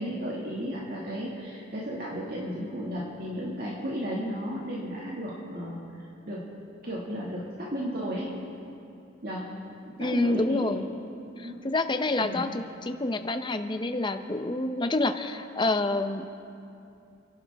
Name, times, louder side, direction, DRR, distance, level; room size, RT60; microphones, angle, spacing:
voice 1, 0.0-6.4 6.8-8.3 9.2-10.7 11.4-11.6 12.2-12.4, equal, 50° right, -5 dB, 2.0 m, -34 dB
voice 2, 10.0-10.9 11.4-16.2, left 2 dB, 25° left, 8 dB, 0.7 m, -28 dB
30.0 x 11.5 x 3.5 m, 2.6 s
head